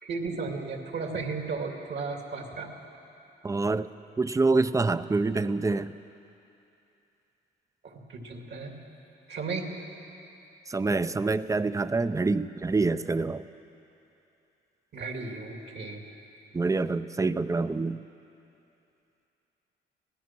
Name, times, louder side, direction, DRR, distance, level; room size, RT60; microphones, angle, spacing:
voice 1, 0.0-2.7 7.8-8.7 9.3-9.8 14.9-16.0, right 4 dB, 60° right, 2 dB, 2.7 m, -35 dB
voice 2, 3.4-3.9 4.2-5.9 10.7-13.4 16.5-18.0, right 3 dB, 15° right, 13 dB, 0.6 m, -26 dB
24.5 x 17.5 x 6.1 m, 2.8 s
cardioid pair, 90°, 20 cm